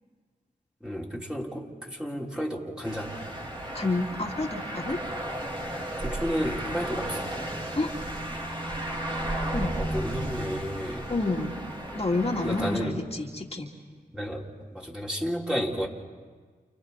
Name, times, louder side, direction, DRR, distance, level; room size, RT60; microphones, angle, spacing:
voice 1, 0.8-3.2 6.0-7.3 9.8-11.1 12.4-13.0 14.1-15.9, equal, 5° right, -2 dB, 3.7 m, -32 dB
sound 1, 2.8-12.8, right 1 dB, 30° right, 4.0 m, -34 dB
voice 2, 3.7-5.0 7.7-7.9 9.5-9.7 11.1-11.5 11.9-13.7, left 2 dB, 40° left, -1 dB, 2.7 m, -29 dB
29.5 x 29.5 x 4.1 m, 1.6 s
cardioid pair, 45°, 17 cm